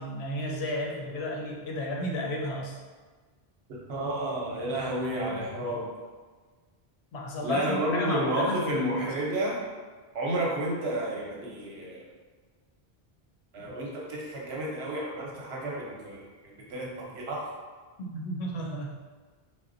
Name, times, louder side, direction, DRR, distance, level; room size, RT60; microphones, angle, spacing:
voice 1, 0.0-2.8 7.1-9.1 18.0-18.9, left 1 dB, 85° left, -1 dB, 0.9 m, -33 dB
voice 2, 3.7-5.9 7.4-9.6 10.1-12.0 13.5-16.2 16.7-17.5, right 1 dB, 80° right, -3 dB, 1.0 m, -31 dB
4.2 x 2.1 x 2.5 m, 1.4 s
omnidirectional pair, 1.1 m